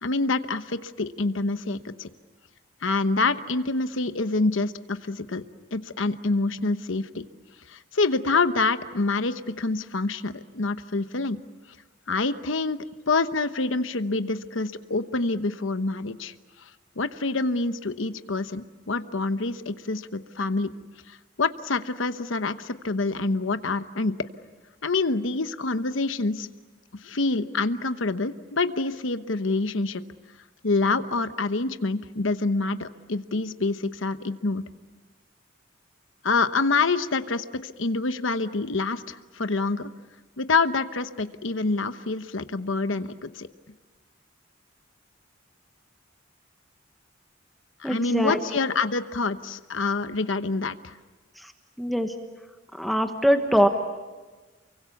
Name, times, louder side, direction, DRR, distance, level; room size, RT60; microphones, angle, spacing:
voice 1, 0.0-2.1 2.8-5.4 5.7-7.2 7.7-11.4 12.1-12.8 13.1-16.3 17.0-20.7 21.1-24.1 24.8-26.5 27.0-30.0 30.6-34.6 36.2-39.9 40.4-43.5 47.8-50.9, left 3 dB, 80° left, 10 dB, 1.0 m, -26 dB
voice 2, 47.8-48.4 51.4-51.5 51.8-52.1 52.8-53.7, equal, ahead, 5 dB, 1.2 m, -22 dB
29.0 x 23.5 x 7.1 m, 1.3 s
head